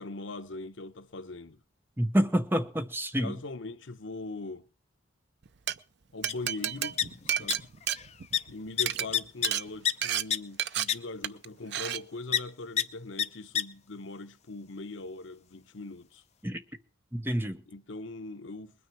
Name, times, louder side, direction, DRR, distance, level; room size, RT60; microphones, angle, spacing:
voice 1, 0.0-1.6 3.2-4.6 6.1-7.0 7.2-7.7 8.5-16.2 17.7-18.7, left 2 dB, 75° left, 0.9 m, -41 dB
voice 2, 2.0-3.4 16.4-16.6 17.1-17.6, equal, 10° right, 0.9 m, -28 dB
Glass, 5.5-5.7 6.2-8.5 8.8-9.0 9.4-9.6 10.0-10.2 10.6-10.8 11.2-11.5 11.7-12.0, right 10 dB, 60° right, 0.6 m, -30 dB
sound 1, 6.3-6.4 6.6-7.5 7.8-8.1 8.3-8.4 8.8-9.9 10.3-10.4 10.9-11.0 12.3-12.4 12.8-12.9 13.2-13.3 13.5-13.6, left 9 dB, 35° left, 0.7 m, -27 dB
21.0 x 9.6 x 4.5 m
head